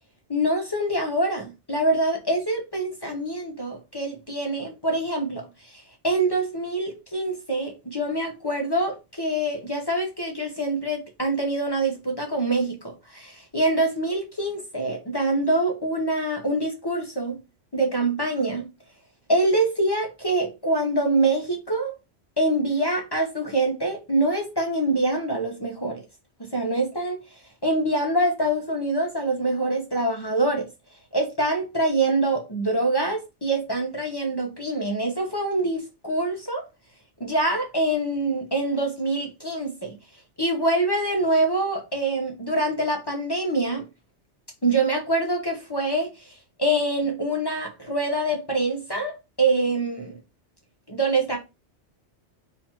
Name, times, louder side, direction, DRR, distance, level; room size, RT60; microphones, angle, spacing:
voice 1, 0.3-17.4 17.7-18.7 19.3-21.9 22.4-26.0 26.4-27.2 27.6-30.6 31.1-36.6 37.2-40.0 40.4-43.9 44.6-46.3 46.6-50.2 50.9-51.4, right 2 dB, 25° left, 0.6 m, -25 dB
2.9 x 2.4 x 4.2 m
omnidirectional pair, 1.2 m